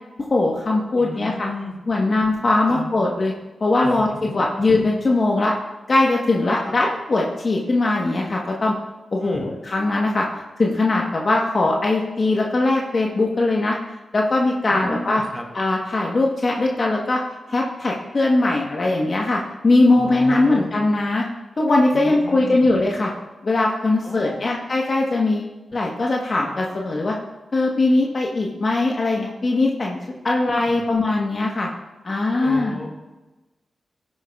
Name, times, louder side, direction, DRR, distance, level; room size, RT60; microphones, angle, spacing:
voice 1, 0.2-1.5 1.9-3.3 3.6-5.5 5.9-8.7 9.1-10.2 10.6-13.8 14.1-15.2 15.5-17.2 17.5-21.2 21.6-23.1 23.4-27.2 27.5-30.0 30.2-31.7 32.0-32.7, left 2 dB, 50° left, -1 dB, 1.2 m, -20 dB
voice 2, 1.0-1.8 2.7-2.9 3.8-4.3 6.6-6.8 9.2-9.5 14.7-15.5 19.9-20.7 21.9-22.7 24.0-24.6 30.3-30.8 32.4-32.9, left 1 dB, 20° left, 1 dB, 2.0 m, -34 dB
12.5 x 9.8 x 2.4 m, 1.1 s
cardioid pair, 50°, 0 cm